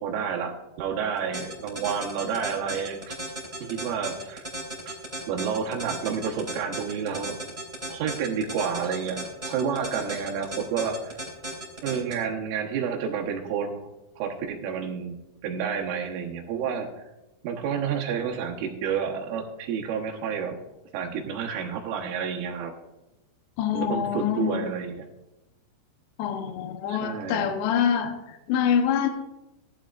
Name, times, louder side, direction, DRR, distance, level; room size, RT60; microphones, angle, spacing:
voice 1, 0.0-3.2 3.6-4.5 4.9-5.0 5.3-7.4 7.9-11.2 11.8-13.8 14.2-15.2 15.4-17.1 17.4-20.6 20.9-22.7 23.7-25.1 26.9-27.5, right 7 dB, 75° right, 0 dB, 3.7 m, -30 dB
sound 1, 1.2-12.1, right 1 dB, 15° right, 2.3 m, -35 dB
voice 2, 23.6-24.6 26.2-29.1, left 8 dB, 75° left, 5 dB, 2.7 m, -25 dB
18.0 x 11.5 x 2.5 m, 0.98 s
omnidirectional pair, 5.8 m